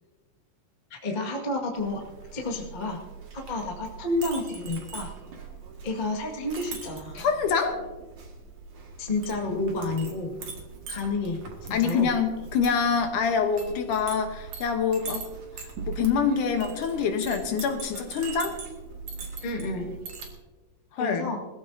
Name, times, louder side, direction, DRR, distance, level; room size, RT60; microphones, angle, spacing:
voice 1, 0.9-3.0 3.3-5.1 5.8-7.2 9.0-10.3 10.9-12.1 19.4-19.9 21.0-21.4, left 2 dB, 25° left, 0 dB, 1.0 m, -30 dB
Chink clink, 1.7-20.3, right 5 dB, 55° right, 2.9 m, -41 dB
voice 2, 7.1-7.8 11.7-15.2 15.9-18.6 20.9-21.3, left 6 dB, 70° left, 5 dB, 2.4 m, -25 dB
21.0 x 14.5 x 2.8 m, 1.2 s
omnidirectional pair, 4.0 m